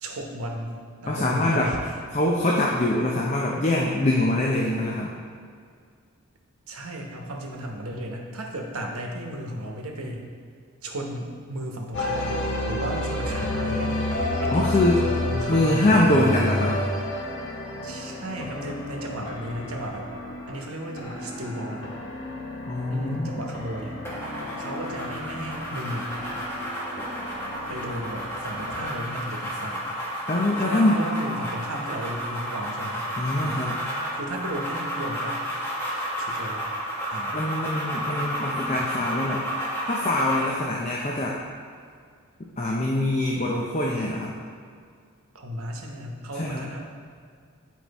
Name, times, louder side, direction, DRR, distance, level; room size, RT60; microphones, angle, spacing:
voice 1, 0.0-1.9 6.7-10.4 10.8-14.0 14.4-15.8 17.8-20.1 20.5-22.0 22.9-24.0 24.6-26.1 27.7-30.3 30.6-33.0 33.3-33.7 34.1-35.5 36.2-36.7 37.1-37.5 45.3-46.9, right 1 dB, 85° right, 1 dB, 1.0 m, -34 dB
voice 2, 1.1-1.7 2.1-5.2 14.5-15.0 15.5-16.9 22.7-23.4 30.3-31.0 33.2-33.8 37.3-39.4 39.9-41.3 42.6-44.3 46.3-46.7, left 1 dB, 30° left, -2 dB, 0.5 m, -24 dB
sound 1, 11.9-28.9, left 1 dB, 55° left, 1.0 m, -31 dB
sound 2, 24.1-40.6, equal, 10° left, 1.4 m, -32 dB
8.8 x 4.5 x 4.1 m, 2.1 s
head